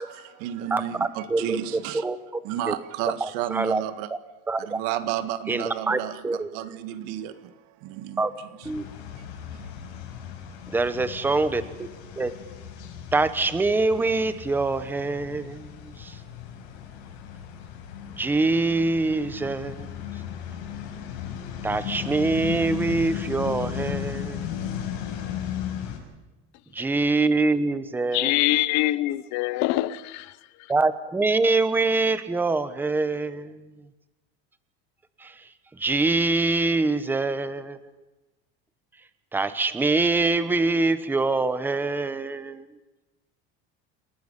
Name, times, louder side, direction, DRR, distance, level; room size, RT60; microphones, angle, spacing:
voice 1, 0.0-2.1 2.4-4.1 4.6-8.5 9.5-9.7, right 12 dB, 75° right, 1.8 m, -32 dB
voice 2, 0.7-1.6 2.0-2.2 2.7-2.8 3.2-3.8 4.5-4.8 5.5-6.5 8.2-8.3 8.6-8.9 10.7-11.9 12.2-12.3 13.1-16.2 18.2-19.9 21.6-24.4 26.7-28.4 30.7-33.6 35.2-35.5 35.8-37.8 39.3-42.7, right 3 dB, 5° right, 0.9 m, -24 dB
sound 1, 8.6-26.0, left 9 dB, 90° left, 6.0 m, -36 dB
voice 3, 28.1-30.4, left 17 dB, 60° left, 1.0 m, -24 dB
28.0 x 12.0 x 9.9 m
cardioid pair, 170°, 31 cm